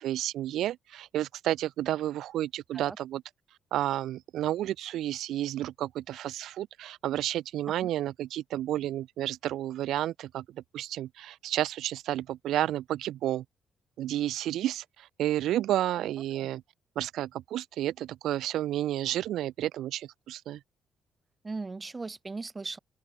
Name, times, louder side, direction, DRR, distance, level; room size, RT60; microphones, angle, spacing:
voice 1, 0.0-3.2 3.7-13.4 14.0-16.6 17.0-20.6, right 13 dB, 80° right, 0.3 m, -31 dB
voice 2, 21.4-22.8, right 3 dB, 25° right, 1.6 m, -38 dB
open air
cardioid pair, 90°, 0 cm